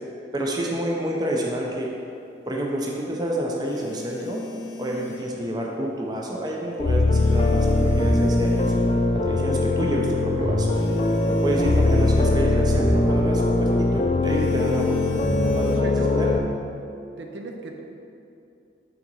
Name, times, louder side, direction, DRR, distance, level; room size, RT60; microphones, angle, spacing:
voice 1, 0.3-1.9 2.5-4.4 4.8-8.7 9.1-10.7 11.3-15.0 15.4-16.3, right 1 dB, 25° right, -1 dB, 0.6 m, -28 dB
sound 1, 3.7-5.4 7.2-8.9 10.7-12.4 14.2-15.8, left 3 dB, 80° left, 0.6 m, -41 dB
sound 2, 6.8-16.4, left 2 dB, 30° left, 0.3 m, -21 dB
voice 2, 15.8-16.4 17.2-17.8, left 2 dB, 90° right, 2 dB, 0.6 m, -33 dB
5.8 x 3.9 x 5.3 m, 2.6 s
head